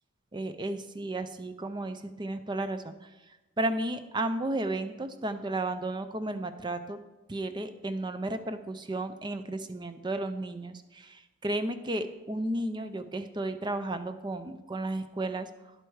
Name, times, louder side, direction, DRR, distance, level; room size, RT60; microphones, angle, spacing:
voice 1, 0.3-3.1 3.6-7.0 7.3-15.5, right 2 dB, 20° right, 10 dB, 0.5 m, -33 dB
10.5 x 7.8 x 4.8 m, 1.1 s
head